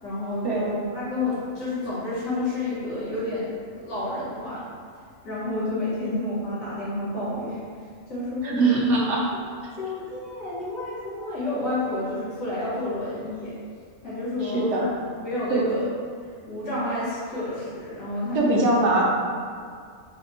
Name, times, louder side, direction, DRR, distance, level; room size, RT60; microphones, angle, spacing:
voice 1, 0.0-3.5 3.8-4.7 5.2-7.6 8.1-8.6 9.3-9.4 9.8-13.5 14.0-14.9 15.2-15.8 16.5-18.6, left 2 dB, 85° left, -10 dB, 2.0 m, -30 dB
voice 2, 8.4-9.2 14.4-14.8 15.5-15.7 18.3-19.0, right 2 dB, 65° right, -4 dB, 0.9 m, -21 dB
4.2 x 2.1 x 4.1 m, 2.1 s
omnidirectional pair, 1.4 m